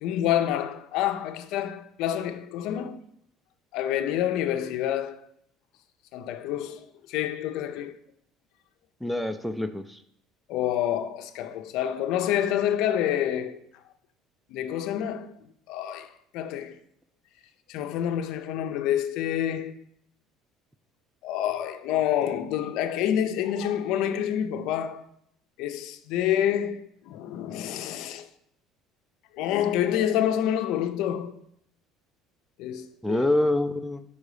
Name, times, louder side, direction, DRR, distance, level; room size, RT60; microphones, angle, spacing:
voice 1, 0.0-3.0 3.7-5.3 6.1-8.0 10.5-13.6 14.5-15.3 15.7-16.8 17.7-19.8 21.2-25.0 25.6-28.3 29.3-31.3 32.6-33.2, left 10 dB, 70° left, 0.5 m, -28 dB
voice 2, 9.0-10.0 33.0-34.0, left 2 dB, ahead, 0.4 m, -26 dB
5.4 x 3.9 x 4.9 m
cardioid pair, 140°, 0 cm